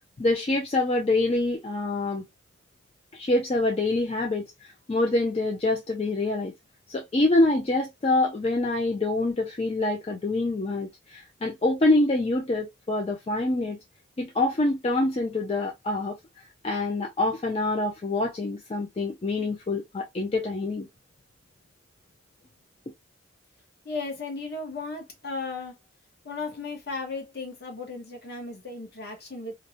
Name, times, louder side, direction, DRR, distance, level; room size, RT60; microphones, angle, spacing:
voice 1, 0.2-2.2 3.1-6.5 6.9-13.8 14.2-16.2 16.6-20.9, left 2 dB, 30° left, 0.3 m, -26 dB
voice 2, 23.8-25.7 26.2-29.5, left 3 dB, 50° left, 0.9 m, -35 dB
2.5 x 2.0 x 2.6 m
head